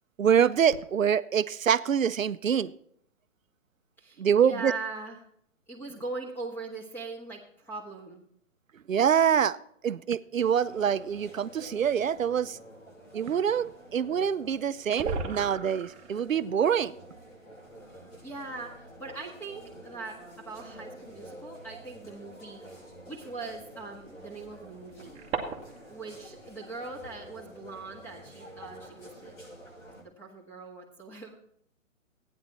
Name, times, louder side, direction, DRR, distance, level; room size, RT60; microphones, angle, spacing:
voice 1, 0.2-2.7 4.2-4.7 8.9-9.6 9.8-12.6 13.1-16.9, right 8 dB, 80° right, 15 dB, 0.7 m, -25 dB
voice 2, 4.0-5.2 5.7-8.2 17.9-25.2 25.8-29.4 30.0-31.4, right 3 dB, 5° left, 0 dB, 1.6 m, -41 dB
sound 1, 10.6-30.0, equal, 90° left, 6.3 m, -49 dB
sound 2, 14.2-14.3 14.5-14.6 14.8-16.2 17.6-17.7 18.6-18.7 20.6-20.8 22.1-22.2 24.3-25.9, right 5 dB, 15° right, 1.3 m, -36 dB
14.5 x 9.6 x 4.3 m, 0.68 s
figure-of-eight pair, 135°, 39 cm